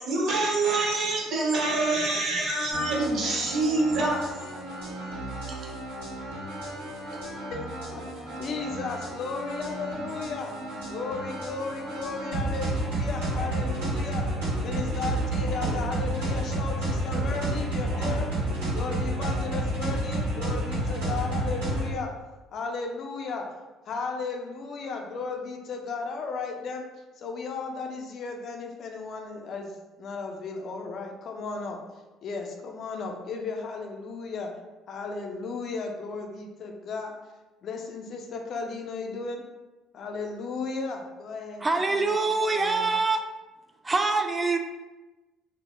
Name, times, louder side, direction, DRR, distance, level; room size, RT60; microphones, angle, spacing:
voice 1, 0.0-4.2, right 2 dB, 60° right, -2 dB, 0.7 m, -25 dB
sound 1, 2.7-21.9, right 1 dB, 90° right, 0.9 m, -31 dB
voice 2, 7.5-8.0 8.4-10.5 10.9-14.3 14.6-18.3 18.7-22.1 22.5-23.5 23.9-26.8 27.2-31.8 32.2-34.5 34.9-37.1 37.6-39.4 39.9-42.1 42.5-42.9, left 4 dB, 55° left, 3 dB, 0.4 m, -35 dB
voice 3, 41.6-43.2 43.8-44.6, right 3 dB, 25° right, 5 dB, 0.3 m, -24 dB
2.1 x 2.0 x 3.0 m, 1.1 s
hypercardioid pair, 55°, 0 cm